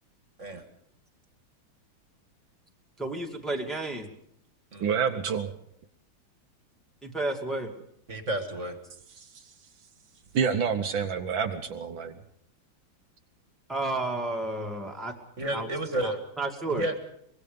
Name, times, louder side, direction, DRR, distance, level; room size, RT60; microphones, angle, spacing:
voice 1, 3.0-4.1 7.0-7.7 13.7-15.1 15.5-15.7 16.0-16.8, right 2 dB, ahead, 0 dB, 2.4 m, -31 dB
voice 2, 4.8-5.6 9.2-9.4 10.3-12.2, right 6 dB, 70° right, 6 dB, 1.8 m, -28 dB
voice 3, 8.1-8.8 15.4-16.2 16.7-16.9, right 1 dB, 35° right, 7 dB, 2.2 m, -31 dB
24.0 x 21.5 x 5.3 m, 0.72 s
omnidirectional pair, 2.2 m